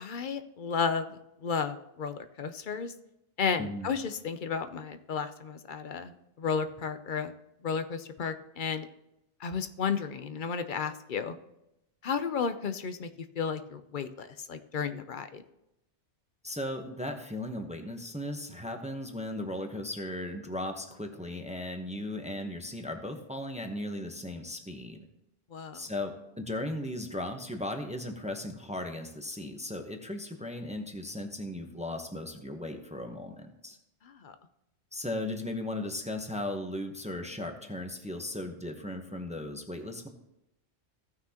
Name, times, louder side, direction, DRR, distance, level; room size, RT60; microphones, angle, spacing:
voice 1, 0.0-2.9 3.4-7.3 7.6-8.9 9.4-11.3 12.0-13.1 13.4-15.4 25.5-25.8 34.1-34.3, left 6 dB, 50° left, 10 dB, 0.7 m, -33 dB
voice 2, 3.6-3.9 16.4-25.1 25.7-33.8 34.9-40.1, left 1 dB, 5° right, 4 dB, 0.8 m, -37 dB
16.0 x 5.9 x 2.9 m, 0.86 s
omnidirectional pair, 1.2 m